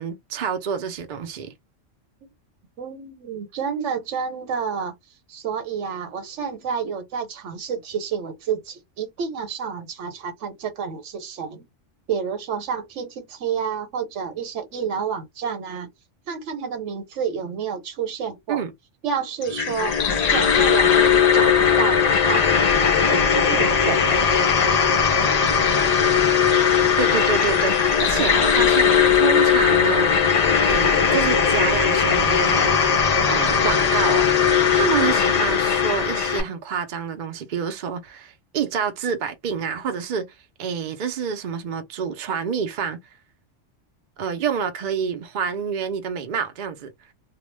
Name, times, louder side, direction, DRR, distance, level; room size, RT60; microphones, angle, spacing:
voice 1, 0.0-1.5 18.5-18.7 27.0-30.1 30.7-32.8 33.3-34.3 34.7-40.3 40.6-43.0 44.2-46.9, right 7 dB, 55° right, 0.5 m, -27 dB
voice 2, 2.8-4.9 5.3-11.6 12.1-15.9 16.3-18.7 19.0-20.0 20.3-22.5 22.8-24.3, right 7 dB, 75° right, 1.1 m, -29 dB
sound 1, 19.4-36.4, left 7 dB, 65° left, 0.4 m, -18 dB
2.3 x 2.1 x 3.2 m
omnidirectional pair, 1.3 m